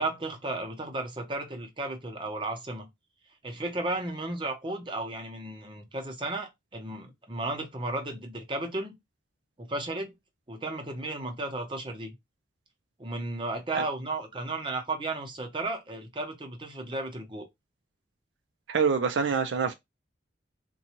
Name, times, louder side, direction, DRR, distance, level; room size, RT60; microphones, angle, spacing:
voice 1, 0.0-2.9 3.4-8.9 9.6-10.1 10.5-12.1 13.0-17.5, right 2 dB, 25° right, 0.7 m, -34 dB
voice 2, 18.7-19.7, right 5 dB, 85° right, 0.4 m, -25 dB
3.9 x 2.3 x 2.8 m
head